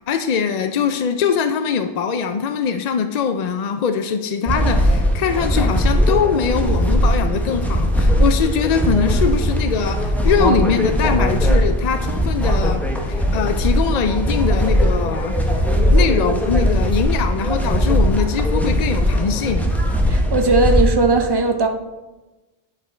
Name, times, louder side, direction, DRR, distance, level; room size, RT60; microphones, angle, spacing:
voice 1, 0.1-15.6 15.9-19.7, left 6 dB, 60° left, 8 dB, 0.4 m, -22 dB
sound 1, 4.5-20.8, equal, ahead, 0.8 m, -19 dB
voice 2, 20.1-21.7, right 3 dB, 30° right, 5 dB, 0.5 m, -18 dB
9.4 x 5.1 x 4.3 m, 1.1 s
omnidirectional pair, 1.1 m